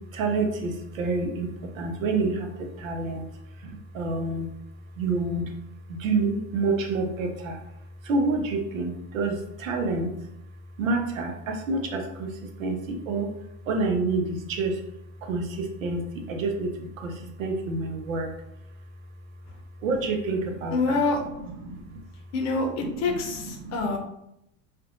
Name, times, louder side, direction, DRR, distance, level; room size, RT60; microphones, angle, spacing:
voice 1, 0.1-3.2 3.6-4.5 5.0-5.5 5.9-7.6 8.0-10.1 10.8-12.3 12.6-13.3 13.7-14.8 15.2-18.3 19.8-21.0 21.6-22.0 23.6-23.9, right 3 dB, 80° right, 3 dB, 0.6 m, -28 dB
voice 2, 20.7-21.2 22.3-24.0, left 3 dB, 45° left, 2 dB, 0.6 m, -26 dB
2.5 x 2.1 x 2.4 m, 0.81 s
hypercardioid pair, 75°, 40 cm